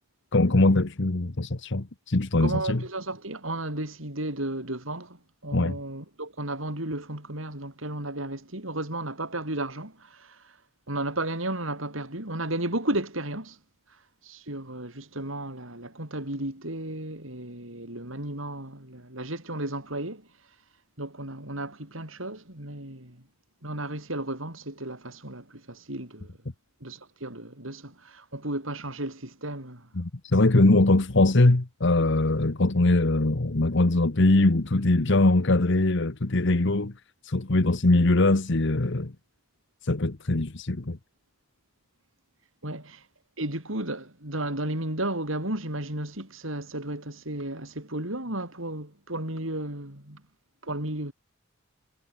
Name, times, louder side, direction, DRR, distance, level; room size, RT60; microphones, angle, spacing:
voice 1, 0.3-2.8 5.5-5.8 29.9-36.9 37.2-39.1 39.8-41.0, left 2 dB, 60° left, 1.3 m, -22 dB
voice 2, 2.4-10.5 10.9-13.6 14.2-20.3 21.0-23.2 23.6-26.4 26.8-29.9 42.6-43.0 43.4-50.2 50.6-51.1, right 1 dB, 70° right, 6.6 m, -34 dB
head